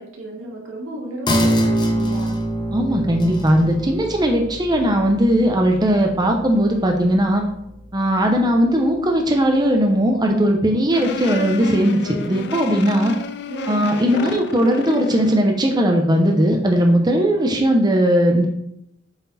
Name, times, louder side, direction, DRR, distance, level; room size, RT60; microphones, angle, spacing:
voice 1, 0.0-2.4 10.9-11.0 13.5-14.6, right 1 dB, 90° right, -2 dB, 2.2 m, -34 dB
sound 1, 1.3-8.3 8.7-8.8, right 1 dB, 25° left, 1.1 m, -25 dB
voice 2, 2.7-7.4 7.9-13.1 13.7-18.5, equal, 20° right, 2 dB, 0.8 m, -18 dB
sound 2, 10.9-15.5, left 4 dB, 60° left, 0.5 m, -31 dB
7.9 x 4.4 x 4.2 m, 0.78 s
head